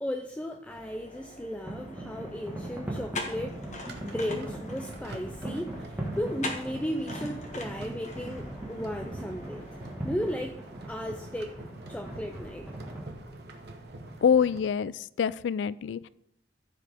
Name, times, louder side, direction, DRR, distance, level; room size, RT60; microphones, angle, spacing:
voice 1, 0.0-5.9 6.2-9.7 10.0-10.6 10.9-11.5 11.9-12.7, equal, 5° left, 4 dB, 0.4 m, -35 dB
sound 1, 0.7-10.0, left 2 dB, 40° left, 1.4 m, -43 dB
sound 2, 1.7-13.1, right 1 dB, 10° right, 1.6 m, -40 dB
sound 3, 3.3-14.6, right 2 dB, 60° right, 1.0 m, -46 dB
voice 2, 14.2-14.9 15.2-16.1, left 7 dB, 75° left, 18 dB, 0.3 m, -25 dB
14.0 x 4.9 x 3.5 m, 0.77 s
head